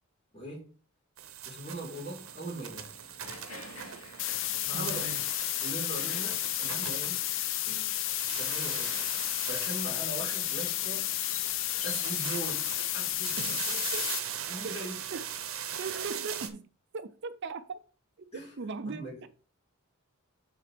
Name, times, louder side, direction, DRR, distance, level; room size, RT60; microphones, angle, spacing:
voice 1, 0.3-0.7 1.4-2.9 4.6-5.0 5.6-7.2 7.6-8.0 8.3-9.0 9.4-11.3 11.8-12.6 12.9-13.8 14.5-14.9 18.3-19.4, right 1 dB, 30° left, 3.9 m, -41 dB
sound 1, 1.2-7.7 8.0-10.8 11.6-16.5, right 9 dB, 70° right, 0.8 m, -40 dB
sound 2, 1.8-13.9, left 2 dB, 85° left, 2.1 m, -50 dB
sound 3, 4.2-14.2, left 13 dB, 60° left, 0.5 m, -32 dB
voice 2, 4.7-5.2 13.4-13.6 13.9-14.1 14.6-15.2 15.8-17.8 18.2-18.3 18.6-19.3, right 4 dB, 55° right, 0.5 m, -39 dB
11.5 x 4.1 x 3.4 m
head